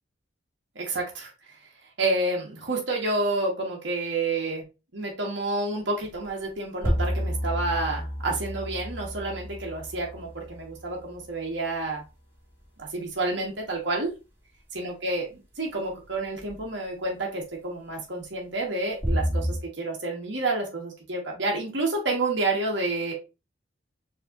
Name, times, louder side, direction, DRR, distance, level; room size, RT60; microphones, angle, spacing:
voice 1, 0.7-1.3 2.0-4.6 4.9-12.0 12.8-14.1 14.7-15.3 15.6-23.1, right 2 dB, 65° right, -1 dB, 1.4 m, -29 dB
sound 1, 6.0-6.1 6.8-11.3 16.3-16.6 19.0-19.6, equal, 10° right, 1.6 m, -30 dB
4.4 x 3.1 x 2.5 m, 0.28 s
head